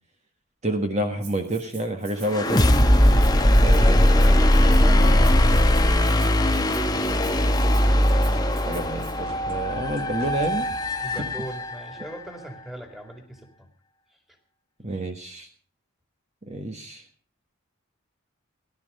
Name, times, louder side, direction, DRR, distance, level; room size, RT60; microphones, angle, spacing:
voice 1, 0.6-2.7 3.6-4.1 8.5-10.7 14.8-15.5 16.4-17.0, right 1 dB, 30° right, 4 dB, 1.5 m, -29 dB
Rattle (instrument), 1.2-9.1, right 6 dB, 50° right, 4.2 m, -47 dB
sound 1, 2.3-12.0, left 1 dB, 20° left, 1.0 m, -19 dB
sound 2, 2.8-11.3, right 1 dB, 85° right, 3.2 m, -44 dB
voice 2, 3.6-5.4 11.0-13.7, equal, ahead, 3 dB, 2.6 m, -38 dB
18.0 x 12.0 x 5.4 m, 0.41 s
head